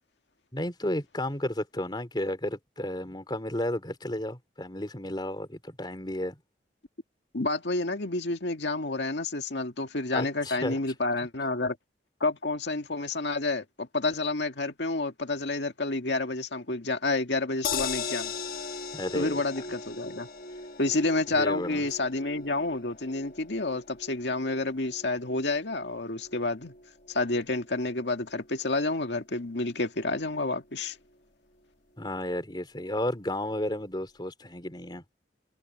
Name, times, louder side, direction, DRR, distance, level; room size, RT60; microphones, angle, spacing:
voice 1, 0.5-6.4 10.1-10.8 18.9-19.6 21.3-21.8 32.0-35.0, left 1 dB, 25° left, 3.2 m, -33 dB
voice 2, 7.3-11.8 12.2-18.3 19.1-20.3 20.8-26.7 27.1-31.0, left 2 dB, 85° left, 2.0 m, -29 dB
sound 1, 17.6-29.9 30.3-30.4 30.6-30.7, left 5 dB, 55° left, 1.6 m, -40 dB
head